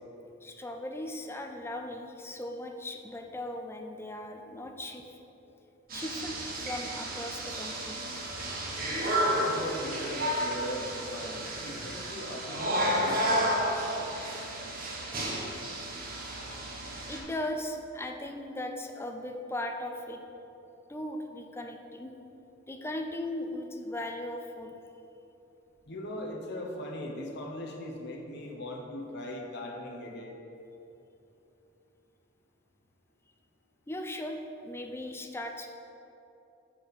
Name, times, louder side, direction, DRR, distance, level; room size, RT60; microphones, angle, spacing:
voice 1, 0.4-5.0 5.9-8.0 17.1-20.2 20.9-22.1 22.7-24.7 33.9-35.7, left 1 dB, 10° left, 4 dB, 0.5 m, -38 dB
sound 1, 5.9-17.2, equal, 50° right, 1.3 m, -32 dB
voice 2, 9.2-13.5 25.9-30.4, left 1 dB, 60° left, 0 dB, 1.2 m, -39 dB
7.6 x 4.4 x 6.7 m, 2.9 s
head